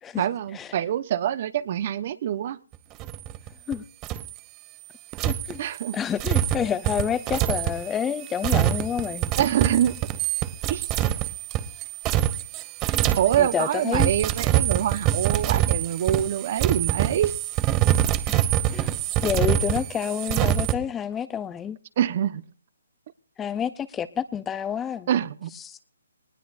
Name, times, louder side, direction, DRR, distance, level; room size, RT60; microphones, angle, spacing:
voice 1, 0.2-2.6 5.6-6.0 9.4-9.9 10.7-10.9 13.2-17.3 22.0-22.4 25.1-25.5, right 10 dB, 35° right, 1.0 m, -25 dB
sound 1, 3.0-3.7 4.0-4.3 5.1-20.7, right 12 dB, 20° right, 0.8 m, -25 dB
voice 2, 5.2-5.6 5.9-9.3 13.4-14.1 18.3-18.4 18.7-18.9 19.2-21.8 23.4-25.1 25.6-25.8, left 8 dB, 10° left, 0.6 m, -28 dB
20.0 x 19.5 x 2.6 m
hypercardioid pair, 160°, 0 cm